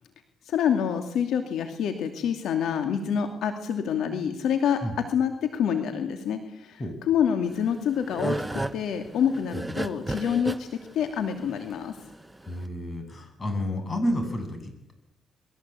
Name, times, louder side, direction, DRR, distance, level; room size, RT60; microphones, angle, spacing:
voice 1, 0.4-4.8 5.1-6.8 7.1-10.7 10.9-11.9, left 8 dB, 75° left, 6 dB, 2.6 m, -27 dB
sound 1, 7.5-12.7, right 1 dB, 10° right, 1.1 m, -32 dB
voice 2, 12.4-14.9, left 1 dB, 30° left, 7 dB, 8.0 m, -31 dB
29.0 x 21.5 x 8.5 m, 0.83 s
cardioid pair, 90°, 0 cm